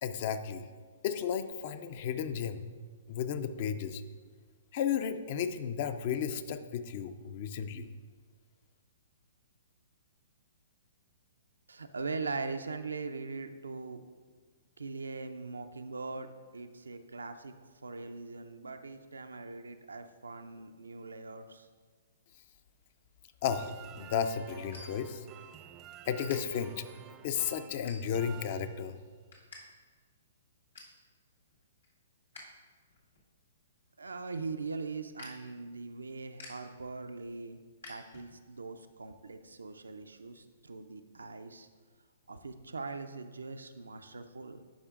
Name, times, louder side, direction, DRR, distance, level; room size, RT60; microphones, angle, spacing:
voice 1, 0.0-0.7 1.0-2.7 3.1-4.0 4.7-7.9 23.4-25.3 26.1-26.8 27.2-29.0, left 8 dB, 45° left, 10 dB, 0.4 m, -33 dB
voice 2, 11.7-14.0 14.8-16.3 16.5-17.6 17.8-21.7 34.0-37.6 37.9-41.7 42.3-44.6, right 4 dB, 85° right, 8 dB, 0.4 m, -41 dB
sound 1, 23.4-29.2, right 9 dB, 25° right, 0.4 m, -51 dB
sound 2, 23.6-25.6 26.1-26.4 26.9-27.2 27.8-28.4 28.8-29.6 29.9-30.0 30.4-31.0 31.5-32.6 32.9-38.6, left 3 dB, 80° left, 1.7 m, -53 dB
11.5 x 5.0 x 2.4 m, 1.5 s
hypercardioid pair, 125°, 0 cm